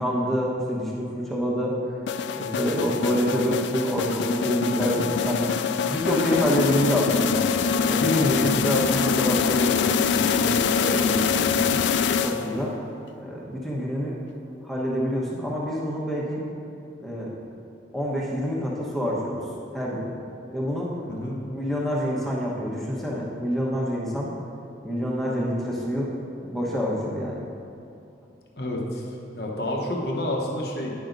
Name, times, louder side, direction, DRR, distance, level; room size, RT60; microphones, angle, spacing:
voice 1, 0.0-1.8 2.4-5.5 5.9-7.4 7.9-9.9 10.2-11.8 12.2-12.7 13.2-14.1 14.6-16.4 17.0-17.3 17.9-19.4 19.7-20.1 20.5-20.9 21.5-24.3 24.8-26.1 26.4-27.4, equal, ahead, -4 dB, 1.1 m, -26 dB
sound 1, 2.1-12.7, left 6 dB, 75° left, 0.3 m, -24 dB
voice 2, 8.2-8.6 21.1-21.4 28.6-29.0 29.3-30.9, left 1 dB, 55° left, -1 dB, 1.0 m, -29 dB
10.0 x 6.0 x 3.9 m, 2.7 s
head